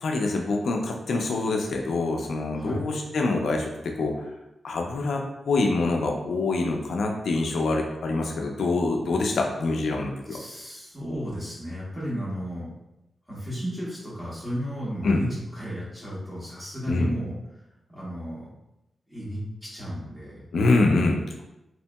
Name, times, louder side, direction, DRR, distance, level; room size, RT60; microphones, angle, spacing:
voice 1, 0.0-4.3 4.6-10.4 15.0-15.2 16.9-17.1 20.5-21.4, left 3 dB, 80° left, 2 dB, 0.3 m, -25 dB
voice 2, 10.3-12.7 13.3-18.5 19.1-20.4, equal, 5° right, -9 dB, 1.2 m, -34 dB
2.9 x 2.7 x 2.2 m, 0.92 s
wide cardioid pair, 145°, 0 cm